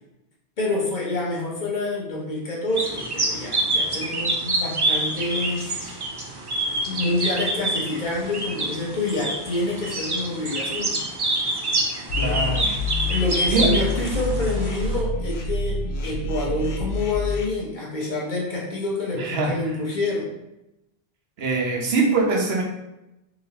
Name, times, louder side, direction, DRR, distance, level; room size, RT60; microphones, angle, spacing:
voice 1, 0.6-6.0 6.8-11.0 12.2-12.5 13.1-20.3, left 2 dB, 50° left, -4 dB, 1.0 m, -27 dB
sound 1, 2.7-15.0, right 2 dB, 35° right, 0.4 m, -27 dB
sound 2, 12.1-17.4, left 2 dB, 85° left, 0.9 m, -27 dB
voice 2, 12.2-12.8 13.5-13.8 19.1-19.5 21.4-22.6, right 3 dB, 75° right, 0 dB, 1.0 m, -23 dB
3.8 x 2.9 x 2.8 m, 0.93 s
omnidirectional pair, 1.0 m